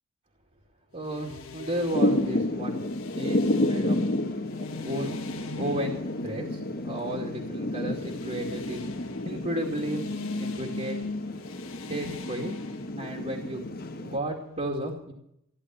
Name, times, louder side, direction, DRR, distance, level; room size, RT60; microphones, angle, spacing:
sound 1, 0.9-14.6, left 3 dB, 65° left, 1.5 m, -41 dB
voice 1, 0.9-2.8 3.2-4.0 4.8-5.1 5.6-6.0 6.2-8.9 9.2-10.0 10.4-11.0 11.9-12.6 13.0-13.6 14.0-15.1, right 1 dB, 35° right, -2 dB, 2.5 m, -33 dB
Thunder / Rain, 1.9-14.2, left 1 dB, 45° left, 1.3 m, -31 dB
16.0 x 11.0 x 7.7 m, 0.76 s
head